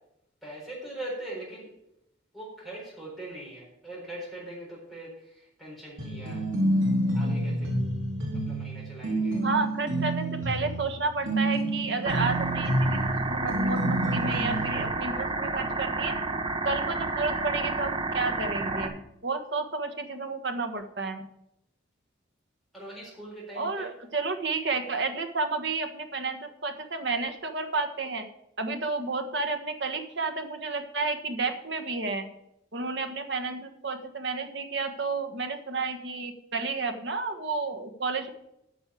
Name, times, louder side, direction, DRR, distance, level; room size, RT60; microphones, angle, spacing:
voice 1, 0.4-1.7 2.3-6.5 7.1-7.7 8.4-9.4 22.7-23.9, right 1 dB, ahead, -6 dB, 4.4 m, -41 dB
sound 1, 6.0-14.9, right 1 dB, 85° right, 3.0 m, -28 dB
voice 2, 9.4-13.0 13.3-16.1 16.6-21.3 23.5-28.2 28.6-32.3 32.7-38.3, right 3 dB, 60° right, 6 dB, 1.3 m, -31 dB
sound 2, 12.0-18.9, right 3 dB, 25° right, 1.0 m, -30 dB
8.9 x 6.2 x 8.4 m, 0.80 s
head